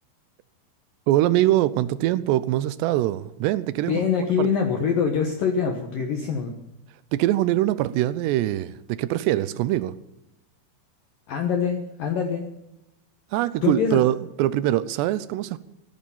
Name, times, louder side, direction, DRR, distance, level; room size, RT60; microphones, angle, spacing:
voice 1, 1.1-4.0 4.4-4.5 7.1-9.9 13.3-15.6, right 14 dB, 80° right, 16 dB, 2.5 m, -23 dB
voice 2, 3.9-6.5 11.3-12.5 13.6-14.0, left 6 dB, 65° left, 3 dB, 2.4 m, -24 dB
15.5 x 12.5 x 7.1 m, 0.90 s
omnidirectional pair, 5.6 m